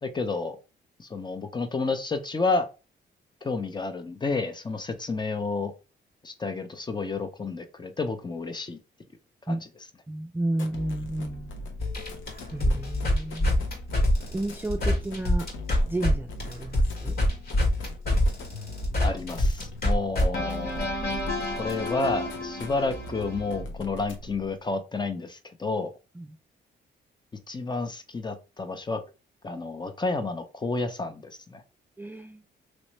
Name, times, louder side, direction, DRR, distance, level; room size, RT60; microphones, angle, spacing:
voice 1, 0.0-0.6 1.0-2.7 3.4-5.7 6.2-8.8 9.5-9.6 19.0-21.0 21.6-25.9 27.5-29.0 29.4-31.6, left 3 dB, 25° left, 0.6 m, -30 dB
voice 2, 10.1-11.6 12.5-13.6 14.3-15.5 15.9-17.2 26.2-26.3 32.0-32.4, right 1 dB, 10° right, 0.3 m, -32 dB
sound 1, 10.5-24.5, left 2 dB, 80° left, 0.9 m, -41 dB
sound 2, 11.8-16.1 16.4-23.6, left 1 dB, 55° left, 1.5 m, -26 dB
3.1 x 3.0 x 3.1 m
cardioid pair, 85°, 19 cm